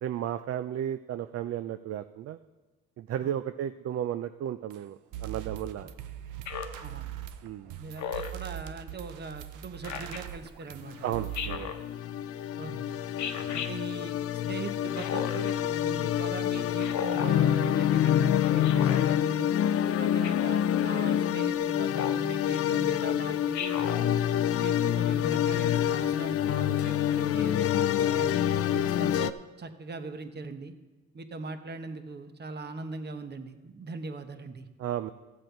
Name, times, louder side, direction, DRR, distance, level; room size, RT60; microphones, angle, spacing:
voice 1, 0.0-2.4 3.0-5.9 7.4-7.8 11.0-11.8 13.3-13.5 28.7-28.9 34.8-35.1, right 10 dB, 55° right, 11 dB, 0.4 m, -34 dB
sound 1, 4.7-4.8 5.1-11.6, right 12 dB, 85° right, 0.7 m, -41 dB
Speech synthesizer, 6.5-6.8 8.0-8.4 9.8-10.2 11.3-11.8 13.2-13.7 14.9-15.5 16.8-17.3 18.6-19.0 20.2-20.6 21.9-22.3 23.5-24.0, left 8 dB, 70° left, 1.0 m, -35 dB
voice 2, 7.8-10.9 12.6-13.1 13.5-19.5 20.0-24.2 24.5-28.5 29.0-30.8 31.1-34.7, right 3 dB, 35° right, 8 dB, 1.0 m, -40 dB
sound 2, 10.9-29.3, left 10 dB, 50° left, 0.4 m, -27 dB
14.0 x 7.7 x 4.5 m, 1.2 s
cardioid pair, 90°, 30 cm